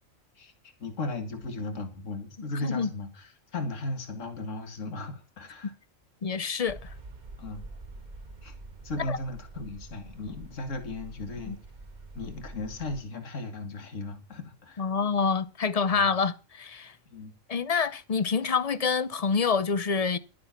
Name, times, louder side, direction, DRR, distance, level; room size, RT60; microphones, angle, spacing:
voice 1, 0.4-5.7 7.4-7.7 8.4-8.5 8.8-11.6 12.2-14.9 15.9-16.1 17.1-17.3, left 2 dB, 65° left, 2.1 m, -36 dB
voice 2, 6.2-6.9 9.1-9.2 11.5-11.6 14.8-16.9 17.5-20.2, left 5 dB, 40° left, 0.5 m, -27 dB
sound 1, 6.6-13.0, right 2 dB, 35° right, 1.2 m, -46 dB
12.0 x 9.5 x 5.8 m
omnidirectional pair, 1.4 m